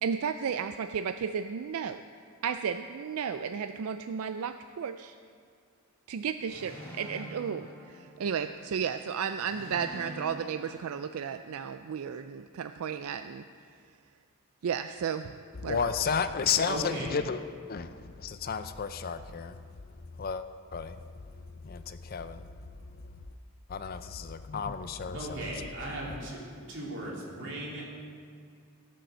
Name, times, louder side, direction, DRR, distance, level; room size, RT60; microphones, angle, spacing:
voice 1, 0.0-2.0 2.4-5.1 6.1-13.4 14.6-15.3 15.6-15.9, right 7 dB, 80° right, 9 dB, 0.4 m, -33 dB
sound 1, 6.4-8.6 9.4-11.6, equal, 10° left, 3.4 m, -46 dB
voice 2, 15.6-17.4 17.7-19.6 20.2-20.4 20.7-21.0 21.6-22.4 23.7-25.7 26.1-26.3, left 6 dB, 45° left, 10 dB, 0.5 m, -32 dB
voice 3, 16.6-17.2 25.1-26.4 26.7-27.9, right 1 dB, 55° right, -5 dB, 3.4 m, -37 dB
16.5 x 6.5 x 6.7 m, 2.3 s
head